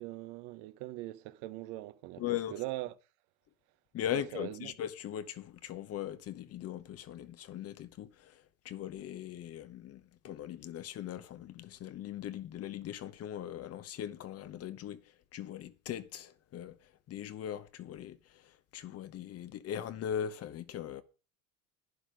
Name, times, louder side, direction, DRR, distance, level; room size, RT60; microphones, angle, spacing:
voice 1, 0.0-2.9 4.1-4.8, right 18 dB, 65° right, 1.1 m, -41 dB
voice 2, 2.2-2.5 3.9-8.1 8.6-15.0 15.3-16.7 17.1-18.2 18.7-21.0, left 10 dB, 35° left, 0.9 m, -39 dB
11.5 x 10.0 x 5.1 m
cardioid pair, 135°, 40 cm